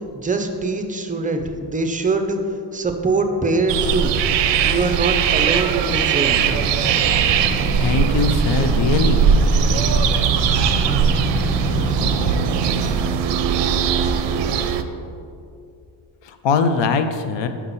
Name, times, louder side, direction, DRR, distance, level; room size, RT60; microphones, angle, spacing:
voice 1, 0.1-2.4 2.7-4.1 4.6-6.5 11.9-12.0, right 3 dB, 15° right, 5 dB, 0.5 m, -23 dB
sound 1, 3.7-14.8, right 7 dB, 60° right, 0.5 m, -19 dB
sound 2, 6.1-13.2, equal, 15° left, 1.4 m, -27 dB
voice 2, 7.7-9.2 16.2-17.5, left 4 dB, 60° left, 8 dB, 0.7 m, -21 dB
5.9 x 5.5 x 4.0 m, 2.5 s
cardioid pair, 90°, 49 cm